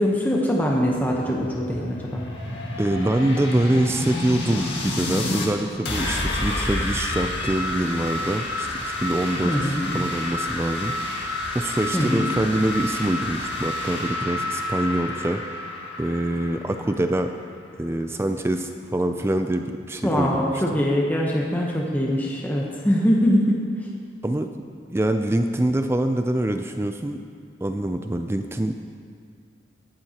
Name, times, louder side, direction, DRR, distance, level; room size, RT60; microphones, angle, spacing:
voice 1, 0.0-2.2 9.4-10.1 11.9-12.3 20.0-23.6, equal, 10° left, -2 dB, 0.9 m, -22 dB
sound 1, 0.9-5.5 5.8-17.4, left 2 dB, 75° left, 1.7 m, -29 dB
voice 2, 2.8-10.9 11.5-15.4 16.0-17.3 17.8-20.8 24.2-24.5 24.9-27.2 27.6-28.7, right 1 dB, 15° right, 7 dB, 0.3 m, -25 dB
20.5 x 7.7 x 2.9 m, 2.2 s
head